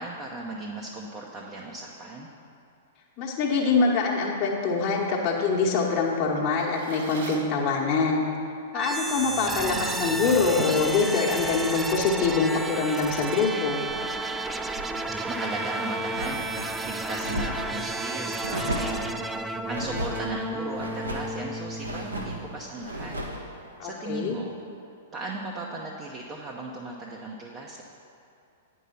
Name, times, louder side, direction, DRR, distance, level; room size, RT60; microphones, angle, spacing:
voice 1, 0.0-2.3 15.3-19.2 19.7-23.1 23.8-24.5 25.1-27.8, right 2 dB, 25° right, -2 dB, 0.8 m, -36 dB
voice 2, 3.2-8.3 8.7-13.8 23.8-24.4, left 4 dB, 30° left, -4 dB, 1.2 m, -24 dB
Drawer open or close, 6.3-7.6 8.8-9.0 9.4-10.9, right 4 dB, 55° right, 1.0 m, -39 dB
sound 1, 8.7-22.6, right 2 dB, 10° right, 0.4 m, -32 dB
sound 2, 12.1-14.2 14.5-15.0 15.4-16.7 17.2-17.8 18.4-19.1 19.7-20.3 20.7-21.4 21.8-22.4 22.8-23.4, equal, 80° right, 1.2 m, -35 dB
9.2 x 5.5 x 5.6 m, 2.6 s
figure-of-eight pair, 105°, 0 cm